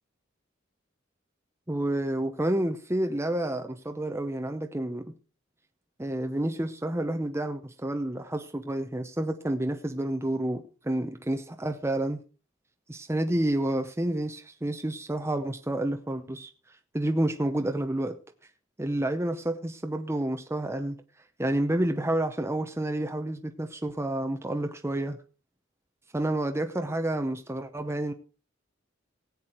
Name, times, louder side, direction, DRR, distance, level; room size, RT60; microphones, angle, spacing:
voice 1, 1.7-5.1 6.0-12.2 12.9-18.2 18.8-21.0 21.4-25.2 26.1-28.1, right 1 dB, 15° right, 0.8 m, -29 dB
17.5 x 8.4 x 4.4 m
head